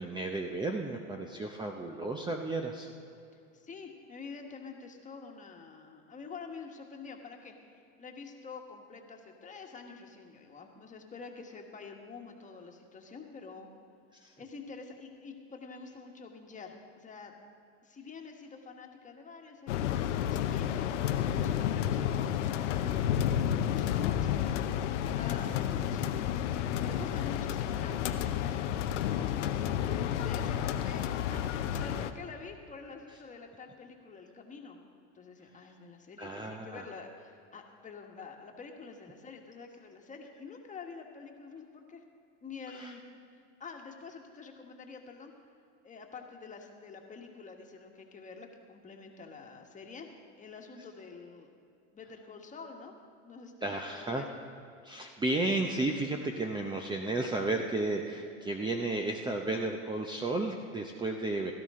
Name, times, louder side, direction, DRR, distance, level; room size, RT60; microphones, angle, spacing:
voice 1, 0.0-2.9 14.2-14.3 26.7-26.8 36.2-36.9 42.7-42.9 53.6-54.2 54.8-61.5, right 2 dB, 15° right, 3 dB, 0.7 m, -33 dB
voice 2, 3.5-7.5 8.0-13.7 14.4-17.3 17.8-26.1 26.8-34.8 35.1-42.0 42.4-43.0 43.6-45.3 45.8-51.5 51.9-52.9 53.2-54.3, left 4 dB, 20° left, 3 dB, 1.5 m, -47 dB
sound 1, 19.7-32.1, left 10 dB, 90° left, 0.8 m, -31 dB
17.0 x 13.0 x 3.7 m, 2.6 s
supercardioid pair, 115°, 35 cm